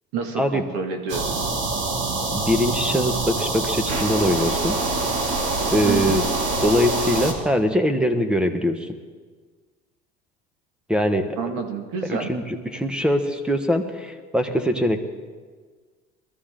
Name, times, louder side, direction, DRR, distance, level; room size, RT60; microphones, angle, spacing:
voice 1, 0.1-1.2 5.8-6.2 11.4-12.3, right 5 dB, 85° right, 4 dB, 2.0 m, -28 dB
sound 1, 1.1-7.3, right 3 dB, 65° right, 2.6 m, -25 dB
voice 2, 2.3-4.8 5.7-6.2 6.6-8.9 10.9-11.4 12.1-15.0, equal, 5° right, 7 dB, 1.2 m, -22 dB
21.5 x 13.5 x 3.8 m, 1.5 s
cardioid pair, 120°, 21 cm